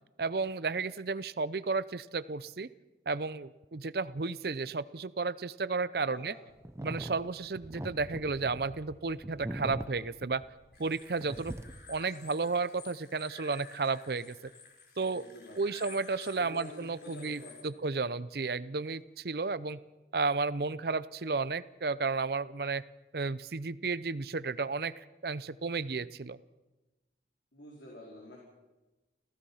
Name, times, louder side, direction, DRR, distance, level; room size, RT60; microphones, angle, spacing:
voice 1, 0.2-2.7 3.1-6.3 6.8-10.4 10.8-11.5 11.9-14.4 15.0-15.3 15.6-19.8 20.1-22.8 23.1-26.4, right 4 dB, 60° right, 17 dB, 0.6 m, -33 dB
voice 2, 6.0-6.4 15.1-16.0 16.4-17.8 27.5-28.4, left 1 dB, 80° left, -3 dB, 4.7 m, -49 dB
sound 1, 6.6-11.0 11.2-12.0, right 1 dB, 15° right, 0.7 m, -42 dB
sound 2, 10.7-17.6, left 4 dB, 60° left, 4.8 m, -53 dB
29.0 x 16.0 x 5.7 m, 1.1 s
head